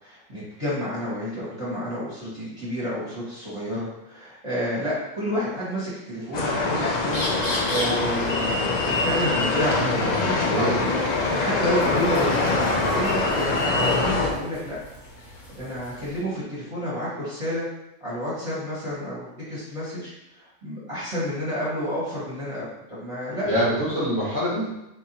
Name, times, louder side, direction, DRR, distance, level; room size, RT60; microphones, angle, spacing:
voice 1, 0.0-14.8 15.1-17.7 18.0-20.1 20.3-23.5, equal, 25° right, -10 dB, 1.2 m, -30 dB
sound 1, 6.3-14.3, left 3 dB, 60° left, 0.4 m, -24 dB
sound 2, 7.1-16.2, left 1 dB, 45° left, 1.1 m, -38 dB
voice 2, 9.7-10.8 11.8-12.0 23.4-24.7, equal, 10° left, -8 dB, 1.2 m, -26 dB
4.0 x 2.7 x 2.9 m, 0.91 s
omnidirectional pair, 1.3 m